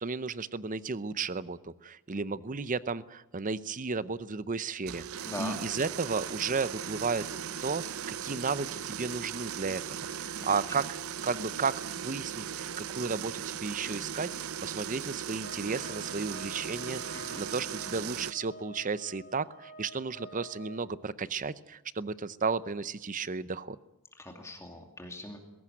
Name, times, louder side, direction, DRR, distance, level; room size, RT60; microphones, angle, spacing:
voice 1, 0.0-7.2 7.6-14.3 14.6-23.8, right 4 dB, 35° right, 16 dB, 0.7 m, -34 dB
sound 1, 4.8-18.3, right 8 dB, 75° right, 0.7 m, -38 dB
voice 2, 5.2-5.6 10.4-10.6 17.1-17.4 24.2-25.4, left 1 dB, 15° left, 3 dB, 2.4 m, -41 dB
sound 2, 15.4-20.8, equal, 45° left, 4.9 m, -49 dB
21.0 x 17.5 x 9.1 m, 0.98 s
head